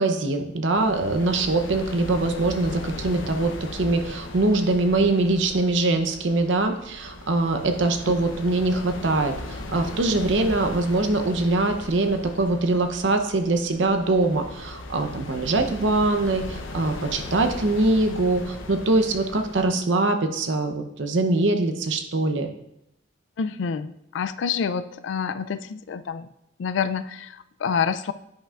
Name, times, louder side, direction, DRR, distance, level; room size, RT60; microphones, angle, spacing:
voice 1, 0.0-22.5, right 2 dB, 70° right, 6 dB, 0.7 m, -23 dB
sound 1, 0.7-19.7, left 2 dB, 90° left, 0.8 m, -38 dB
voice 2, 23.4-26.3 26.6-28.1, left 6 dB, 70° left, 14 dB, 0.3 m, -27 dB
10.0 x 5.6 x 2.4 m, 0.79 s
head